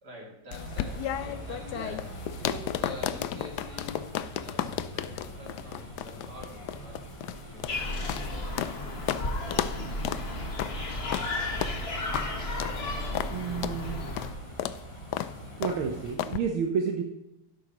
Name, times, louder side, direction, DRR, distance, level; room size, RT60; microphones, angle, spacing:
voice 1, 0.0-4.1 4.4-7.1 7.5-8.7, equal, 50° right, -2 dB, 3.2 m, -46 dB
sound 1, 0.5-8.8 9.1-9.2 9.5-9.8 10.0-10.2 10.6-10.8 11.1-11.3 11.6-11.8 12.1-12.3 12.6-12.8 13.1-13.3 13.6-13.8 14.2-14.3 14.6-14.8 15.1-15.3 15.6-15.8 16.2-16.4, left 11 dB, 80° left, 0.9 m, -33 dB
sound 2, 0.5-16.2, equal, 15° left, 2.3 m, -44 dB
sound 3, 7.7-14.3, left 2 dB, 35° left, 1.3 m, -33 dB
voice 2, 13.3-14.1 15.6-17.0, right 6 dB, 80° right, 2 dB, 1.8 m, -30 dB
12.5 x 11.0 x 3.0 m, 0.92 s
omnidirectional pair, 2.3 m